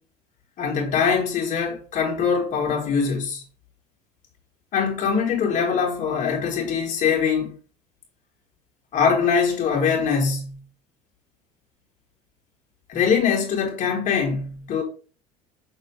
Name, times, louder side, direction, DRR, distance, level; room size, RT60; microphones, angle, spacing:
voice 1, 0.6-3.4 4.7-7.5 8.9-10.6 12.9-14.8, left 6 dB, 50° left, 4.0 m, -22 dB
7.2 x 6.4 x 3.6 m
supercardioid pair, 90°, 17 cm